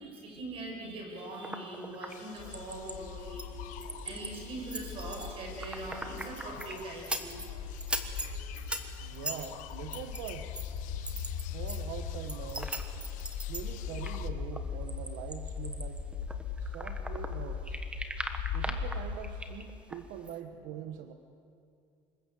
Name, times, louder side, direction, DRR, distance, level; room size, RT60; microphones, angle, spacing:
voice 1, 0.0-3.6 3.9-7.4 7.7-9.3, right 2 dB, 45° right, 1 dB, 7.6 m, -42 dB
sound 1, 1.2-3.0 3.4-4.4 4.7-7.5 7.8-11.8 12.1-17.4 17.6-20.0 20.3-20.4, right 1 dB, 10° right, 1.5 m, -40 dB
sound 2, 2.1-14.3, left 13 dB, 75° left, 1.2 m, -51 dB
sound 3, 2.4-19.4, left 6 dB, 55° left, 2.0 m, -39 dB
voice 2, 9.0-10.5 11.5-12.9 13.3-16.0 16.6-17.8 18.5-21.1, right 9 dB, 90° right, 7 dB, 1.4 m, -43 dB
26.0 x 21.5 x 8.5 m, 2.4 s
cardioid pair, 160°, 13 cm